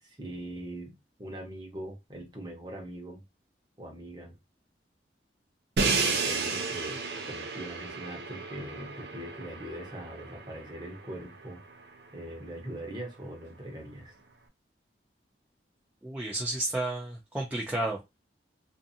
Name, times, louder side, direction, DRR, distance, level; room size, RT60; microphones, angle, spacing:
voice 1, 0.0-3.2 3.8-4.3 5.9-14.1, right 1 dB, 25° right, 0.8 m, -42 dB
Crash cymbal, 5.8-11.7, right 4 dB, 65° right, 0.5 m, -33 dB
voice 2, 16.0-18.2, right 1 dB, 10° right, 0.4 m, -32 dB
2.5 x 2.5 x 2.7 m
head